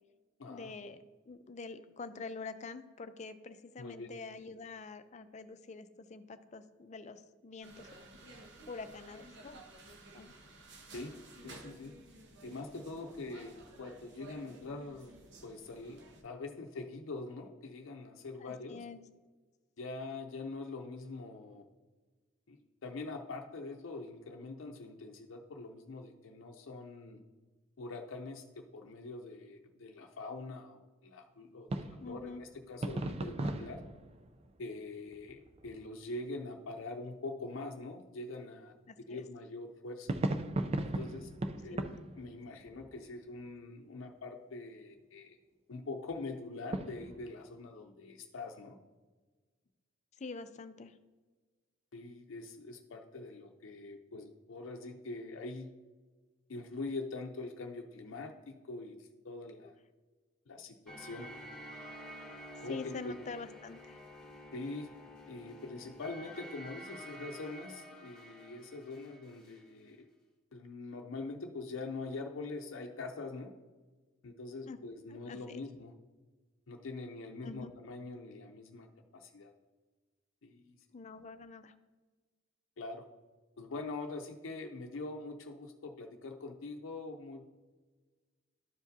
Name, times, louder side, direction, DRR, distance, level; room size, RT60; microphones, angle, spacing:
voice 1, 0.5-1.0 1.3-8.0 8.7-9.6 10.1-10.3 18.4-19.0 32.0-32.4 38.9-39.2 41.7-41.8 50.1-51.0 59.6-59.7 62.7-64.0 74.7-74.8 75.1-75.6 77.4-77.7 80.9-81.7, left 4 dB, 35° left, 11 dB, 0.4 m, -46 dB
voice 2, 3.8-4.1 10.9-11.1 11.4-11.9 12.4-15.1 15.4-18.8 19.8-21.6 22.5-27.2 27.8-33.8 34.6-38.7 39.1-40.2 40.8-41.3 41.6-45.4 45.7-48.8 51.9-55.7 56.5-59.8 60.5-61.3 62.6-63.2 64.5-64.9 65.3-70.1 70.5-73.5 74.2-75.9 76.7-79.5 80.4-80.8 82.8-83.0 83.6-87.4, left 3 dB, 90° left, 2 dB, 0.6 m, -44 dB
sound 1, 7.6-16.2, right 2 dB, 65° right, 1.0 m, -54 dB
sound 2, 31.7-36.1 40.1-43.5 43.8-43.9 46.7-47.3, right 2 dB, 30° right, 0.4 m, -38 dB
sound 3, 60.9-69.6, equal, 5° left, 1.8 m, -50 dB
12.0 x 4.9 x 2.6 m, 1.3 s
head